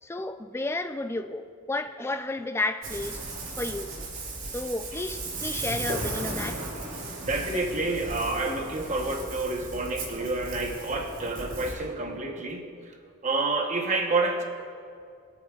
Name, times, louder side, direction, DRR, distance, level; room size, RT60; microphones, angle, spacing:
voice 1, 0.0-3.2 3.6-4.1 4.5-6.6, left 2 dB, 10° left, 8 dB, 0.3 m, -32 dB
Ocean, 2.8-11.7, right 2 dB, 70° right, 2.2 m, -36 dB
voice 2, 7.2-13.0 13.2-14.4, right 2 dB, 35° right, 2 dB, 1.1 m, -29 dB
22.0 x 8.3 x 2.4 m, 2.3 s
head